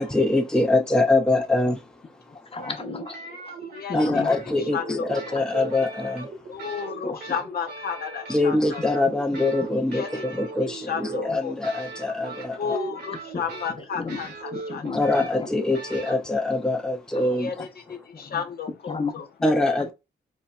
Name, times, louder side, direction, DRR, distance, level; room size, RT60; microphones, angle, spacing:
voice 1, 0.0-1.9 3.9-6.3 8.3-12.8 14.9-17.6 19.4-19.9, left 2 dB, 5° left, 0.6 m, -24 dB
voice 2, 2.5-3.5 3.9-4.3 5.3-5.4 7.0-7.2 11.2-11.4 13.3-13.4 14.0-14.2 14.5-15.0 17.6-17.7 18.1-18.4 18.9-19.2, left 4 dB, 30° left, 0.9 m, -32 dB
sound 1, 2.6-16.1, right 3 dB, 70° right, 1.4 m, -38 dB
voice 3, 3.6-4.4 4.7-5.4 6.5-8.8 9.9-10.2 10.7-11.6 12.6-15.1 17.2-19.3, left 7 dB, 60° left, 0.6 m, -33 dB
4.2 x 2.1 x 2.3 m
cardioid pair, 65°, 18 cm